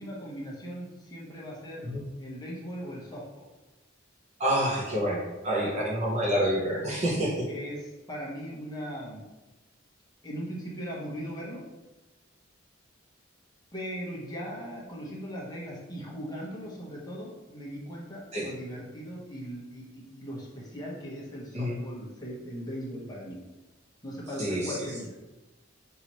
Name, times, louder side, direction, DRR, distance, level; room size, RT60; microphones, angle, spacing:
voice 1, 0.0-1.9 2.2-3.5 7.5-9.2 10.2-11.6 13.7-23.4 24.0-25.1, equal, 20° left, -5 dB, 1.0 m, -39 dB
voice 2, 4.4-7.5 18.3-18.5 21.5-21.8 24.4-24.8, equal, 35° right, -3 dB, 0.9 m, -28 dB
5.8 x 2.7 x 3.0 m, 1.1 s
head